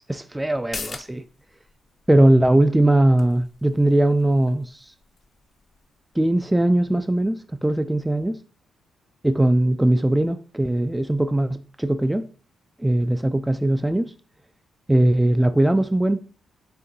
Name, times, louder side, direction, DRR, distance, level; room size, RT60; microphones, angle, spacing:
voice 1, 0.1-1.2 2.1-4.8 6.2-8.4 9.2-12.3 12.8-14.1 14.9-16.2, right 1 dB, 10° right, 0.3 m, -20 dB
sound 1, 0.5-7.7 8.0-8.1, left 4 dB, 45° left, 0.6 m, -44 dB
5.5 x 3.5 x 2.7 m
hypercardioid pair, 45°, 0 cm